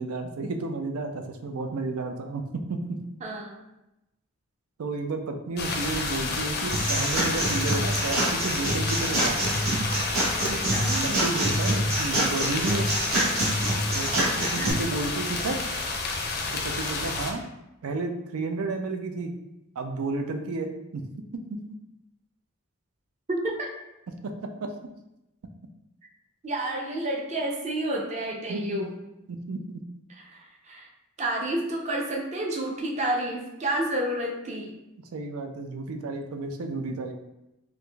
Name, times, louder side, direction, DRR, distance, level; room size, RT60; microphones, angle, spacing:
voice 1, 0.0-2.4 2.7-3.0 4.8-9.4 10.4-10.6 11.0-12.9 13.9-15.6 16.5-17.4 17.8-19.3 19.8-21.1 21.5-21.6 24.2-24.3 24.6-24.7 28.5-28.9 29.3-29.8 35.1-37.1, right 3 dB, 90° right, 5 dB, 0.4 m, -32 dB
voice 2, 3.2-3.6 10.4-11.1 14.6-14.7 23.3-23.7 26.4-28.9 30.2-30.9 31.2-34.7, right 1 dB, 30° right, 0 dB, 0.5 m, -30 dB
sound 1, 5.6-17.3, left 3 dB, 45° left, 0.4 m, -30 dB
sound 2, 6.7-14.7, right 1 dB, 70° right, 1.4 m, -26 dB
4.6 x 2.5 x 2.3 m, 0.91 s
head